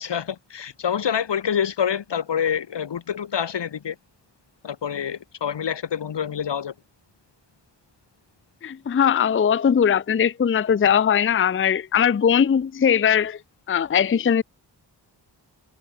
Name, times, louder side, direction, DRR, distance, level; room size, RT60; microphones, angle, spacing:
voice 1, 0.0-4.0 4.6-6.7, left 8 dB, 80° left, 1.4 m, -26 dB
voice 2, 8.6-13.4 13.7-14.4, left 8 dB, 30° left, 0.5 m, -20 dB
wide cardioid pair, 95°, 42 cm